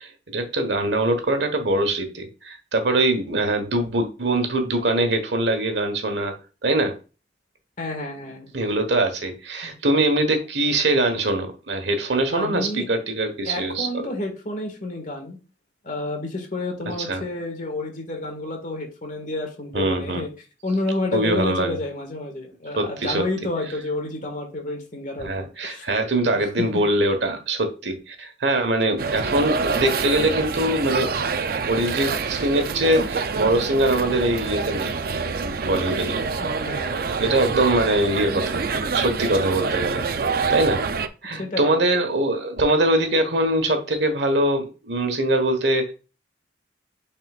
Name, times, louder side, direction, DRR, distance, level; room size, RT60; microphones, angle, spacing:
voice 1, 0.0-6.3 6.6-7.0 8.5-14.1 16.9-17.2 19.7-20.2 21.1-21.8 22.8-23.2 25.2-31.2 31.7-34.9 35.4-36.3 37.2-38.6 38.9-40.0 40.5-40.8 41.2-45.9, right 1 dB, 75° right, 6 dB, 1.3 m, -23 dB
voice 2, 7.8-8.5 12.3-12.9 13.4-15.4 15.8-20.3 20.6-25.9 26.2-26.7 36.4-37.1 41.4-41.8, left 2 dB, 45° left, 3 dB, 1.9 m, -30 dB
sound 1, 29.0-41.1, right 4 dB, 55° right, 0.5 m, -26 dB
9.4 x 4.3 x 2.4 m, 0.32 s
head